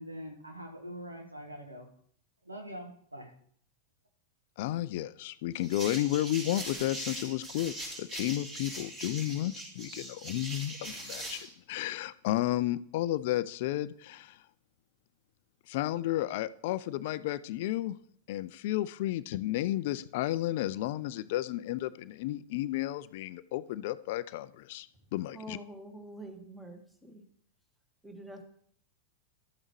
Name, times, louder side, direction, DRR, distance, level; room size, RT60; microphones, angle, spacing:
voice 1, 0.0-1.9 2.4-3.3, equal, 80° right, 2 dB, 1.7 m, -43 dB
voice 2, 4.6-14.4 15.7-18.0 18.3-25.6, left 14 dB, 50° left, 17 dB, 0.3 m, -32 dB
sound 1, 5.6-11.5, right 1 dB, 30° right, 5.1 m, -41 dB
voice 3, 25.3-27.2 28.0-28.4, right 1 dB, 5° right, 4 dB, 1.8 m, -46 dB
12.5 x 8.6 x 3.2 m, 0.63 s
figure-of-eight pair, 90°, 0 cm